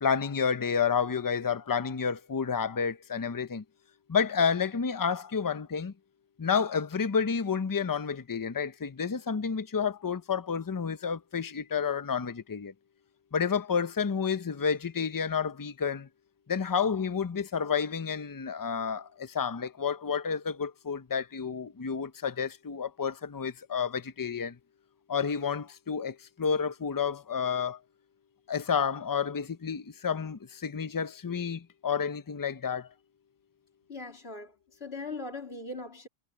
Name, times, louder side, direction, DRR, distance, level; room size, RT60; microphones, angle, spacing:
voice 1, 0.0-3.6 4.1-5.9 6.4-12.7 13.3-16.1 16.5-24.6 25.1-27.8 28.5-32.9, left 6 dB, 25° left, 0.5 m, -30 dB
voice 2, 33.9-36.1, left 3 dB, 60° left, 3.8 m, -40 dB
omnidirectional pair, 1.2 m